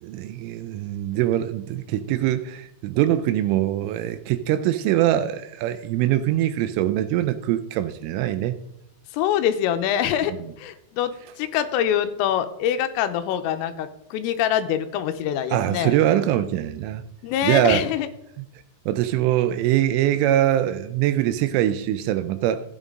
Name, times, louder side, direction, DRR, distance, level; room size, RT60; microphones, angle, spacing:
voice 1, 0.0-8.6 15.5-17.0 17.4-17.8 18.9-22.6, right 12 dB, 80° right, 3.0 m, -23 dB
voice 2, 9.1-16.0 17.2-18.1, left 10 dB, 90° left, 3.4 m, -25 dB
14.0 x 9.0 x 3.7 m
omnidirectional pair, 5.9 m